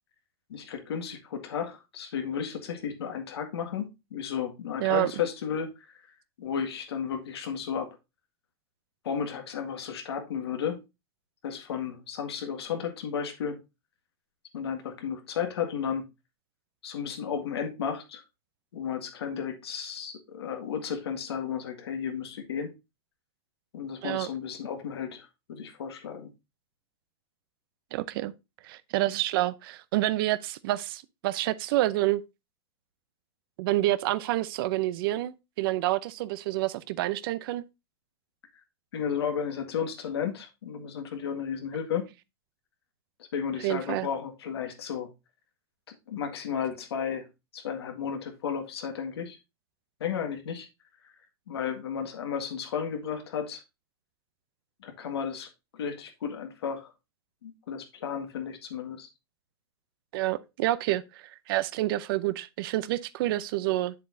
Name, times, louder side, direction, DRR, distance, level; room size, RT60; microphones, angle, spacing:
voice 1, 0.5-5.7 6.4-8.0 9.0-10.8 11.4-13.6 14.5-16.1 16.8-18.2 18.7-22.7 23.7-26.3 38.9-42.0 43.3-45.1 45.9-47.3 47.5-49.4 50.0-50.7 51.5-53.6 54.8-56.9 57.4-59.1, left 7 dB, 85° left, 1.8 m, -33 dB
voice 2, 4.8-5.1 24.0-24.3 27.9-28.3 28.6-32.2 33.6-37.6 43.6-44.1 60.1-63.9, right 16 dB, 65° right, 0.7 m, -28 dB
7.5 x 7.5 x 2.6 m
hypercardioid pair, 120°, 13 cm